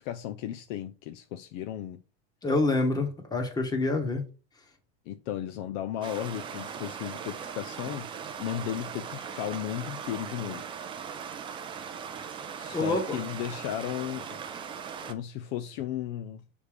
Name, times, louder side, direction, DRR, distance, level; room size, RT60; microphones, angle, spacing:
voice 1, 0.0-2.0 5.1-8.1 8.4-10.7 12.5-14.3 15.0-16.4, left 11 dB, 50° left, 0.5 m, -35 dB
voice 2, 2.4-4.2 12.7-13.2, left 2 dB, 10° left, 1.2 m, -27 dB
Stream, 6.0-15.1, right 7 dB, 15° right, 0.4 m, -39 dB
6.4 x 3.4 x 5.0 m
supercardioid pair, 155°, 35 cm